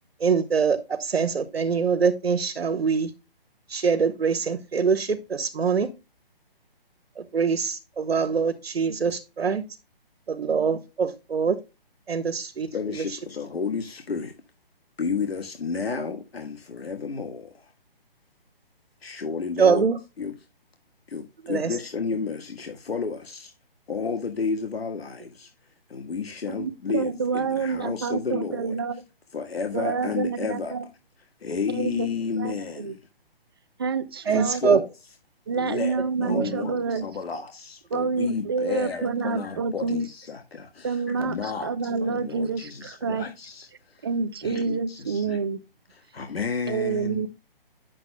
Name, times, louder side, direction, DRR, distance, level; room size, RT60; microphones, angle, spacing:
voice 1, 0.2-3.1 3.7-5.9 7.2-9.6 10.3-11.6 12.1-13.0 19.6-20.0 21.4-21.8 34.3-34.8 36.3-36.6, right 5 dB, 85° right, 1.4 m, -24 dB
voice 2, 12.7-14.3 15.0-17.7 19.0-19.8 20.2-20.3 21.1-23.5 23.9-25.5 25.9-28.7 29.3-30.7 31.4-33.0 34.3-34.9 35.5-44.1 44.4-45.4 45.9-47.3, left 5 dB, 90° left, 1.7 m, -32 dB
voice 3, 26.5-29.0 29.7-30.8 31.7-32.1 32.4-32.9 33.8-34.8 35.5-37.0 37.9-40.0 40.8-43.2 44.0-45.6 46.7-47.3, right 5 dB, 25° right, 0.6 m, -28 dB
10.0 x 7.5 x 2.2 m
hypercardioid pair, 165°, 30 cm